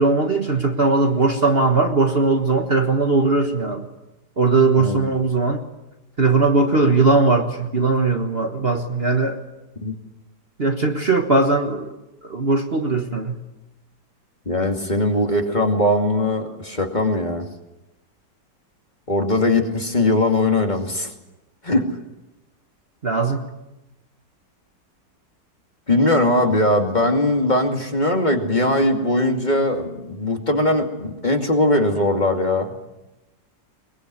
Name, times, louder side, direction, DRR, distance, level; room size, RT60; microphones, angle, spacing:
voice 1, 0.0-3.9 4.4-5.6 6.2-9.4 10.6-11.9 12.2-13.4 23.0-23.4, right 3 dB, 35° right, 4 dB, 1.5 m, -19 dB
voice 2, 14.5-17.5 19.1-21.1 21.6-21.9 25.9-32.8, left 1 dB, 25° left, 3 dB, 2.5 m, -20 dB
22.5 x 22.0 x 9.7 m, 0.98 s
omnidirectional pair, 1.9 m